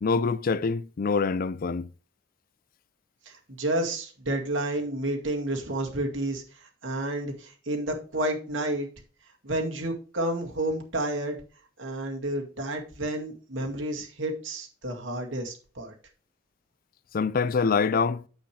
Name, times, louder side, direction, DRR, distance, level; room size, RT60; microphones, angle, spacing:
voice 1, 0.0-1.9 17.1-18.2, left 5 dB, 45° left, 0.4 m, -25 dB
voice 2, 3.3-8.9 9.4-11.4 11.8-15.9, right 1 dB, 80° right, 2.1 m, -30 dB
9.1 x 7.7 x 3.3 m
head